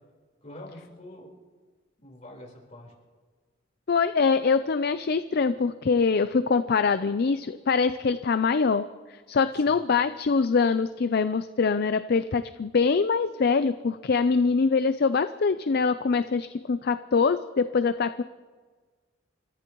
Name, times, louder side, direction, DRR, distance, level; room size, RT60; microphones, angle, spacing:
voice 1, 0.4-1.4 2.0-2.9 9.5-9.8, left 1 dB, 35° left, -1 dB, 4.2 m, -45 dB
voice 2, 3.9-8.9 9.3-18.2, left 5 dB, 50° left, 11 dB, 0.5 m, -24 dB
29.5 x 14.5 x 3.1 m, 1.4 s
head